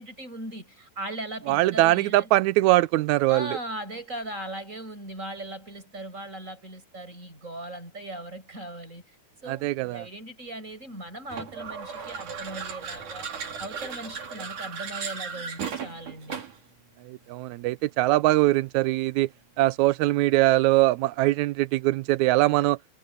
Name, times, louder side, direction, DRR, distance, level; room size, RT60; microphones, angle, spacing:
voice 1, 0.0-2.3 3.3-9.2 9.4-13.3 13.6-16.4, right 1 dB, 20° right, 8.3 m, -38 dB
voice 2, 1.5-3.6 9.5-10.1 17.0-19.3 19.6-22.8, right 18 dB, 80° right, 1.7 m, -22 dB
sound 1, 11.3-16.7, right 6 dB, 65° right, 4.8 m, -36 dB
omnidirectional pair, 3.8 m